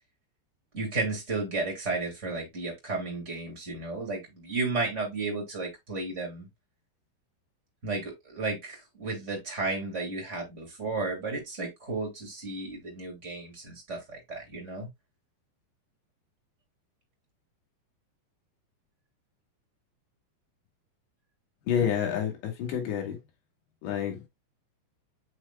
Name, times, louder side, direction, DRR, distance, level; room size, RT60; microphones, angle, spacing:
voice 1, 0.7-6.5 7.8-14.9, right 3 dB, 35° right, 1.1 m, -33 dB
voice 2, 21.7-23.2 23.8-24.3, left 8 dB, 70° left, 4.1 m, -29 dB
7.8 x 5.4 x 2.3 m
omnidirectional pair, 5.4 m